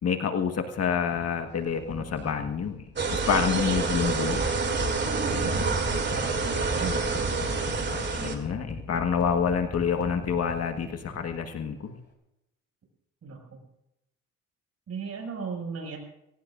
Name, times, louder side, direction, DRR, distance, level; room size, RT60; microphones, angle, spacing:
voice 1, 0.0-2.8 3.1-4.5 8.1-11.9, left 7 dB, 55° left, 6 dB, 1.6 m, -28 dB
sound 1, 0.9-11.7, left 3 dB, 35° left, 4.2 m, -41 dB
sound 2, 3.0-8.4, right 4 dB, 35° right, 3.1 m, -27 dB
voice 2, 6.1-7.1 13.2-13.6 14.9-16.0, right 5 dB, 55° right, 2 dB, 6.5 m, -36 dB
23.5 x 18.0 x 2.6 m, 0.88 s
cardioid pair, 90°, 30 cm